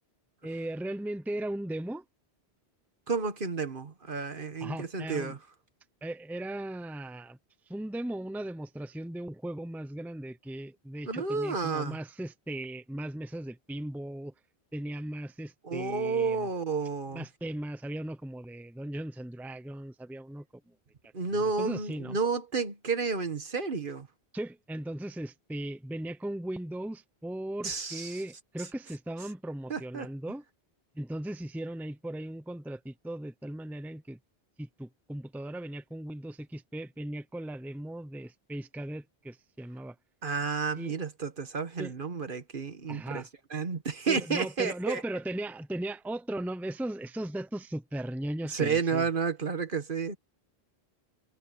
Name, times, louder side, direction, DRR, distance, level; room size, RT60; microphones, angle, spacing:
voice 1, 0.4-2.0 4.6-5.3 6.0-7.4 7.7-14.3 14.7-16.5 17.1-20.7 21.3-22.2 24.3-30.4 30.9-34.2 34.6-40.0 40.8-40.9 41.8-41.9 42.9-43.3 44.1-49.1, right 1 dB, ahead, 0.7 m, -37 dB
voice 2, 3.1-5.4 11.1-12.0 15.6-17.2 21.1-24.1 27.6-28.2 29.7-30.1 40.2-43.2 43.5-45.0 48.5-50.2, right 5 dB, 55° right, 1.5 m, -31 dB
omnidirectional pair, 1.1 m